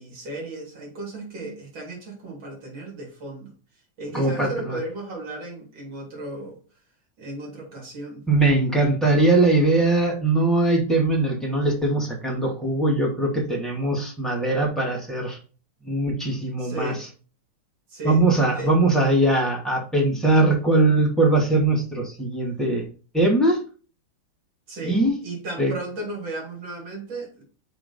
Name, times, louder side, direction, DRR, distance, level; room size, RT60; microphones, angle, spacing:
voice 1, 0.0-3.5 4.0-6.6 7.2-8.2 16.6-17.0 17.9-18.7 24.7-27.4, right 2 dB, 70° right, 0 dB, 3.0 m, -35 dB
voice 2, 4.1-4.8 8.3-15.4 15.8-16.9 18.0-22.8 23.1-23.6 24.8-25.2 25.6-25.7, right 2 dB, ahead, -2 dB, 1.9 m, -21 dB
6.1 x 3.8 x 5.2 m, 0.37 s
omnidirectional pair, 2.2 m